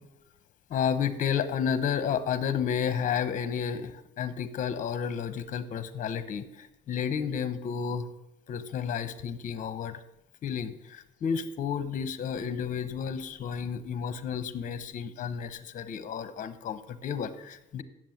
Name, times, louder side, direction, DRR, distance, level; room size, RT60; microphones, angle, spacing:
voice 1, 0.7-8.1 8.5-10.0 10.4-17.8, left 7 dB, 50° left, 12 dB, 0.9 m, -31 dB
7.6 x 7.3 x 7.8 m, 0.86 s
cardioid pair, 110°, 17 cm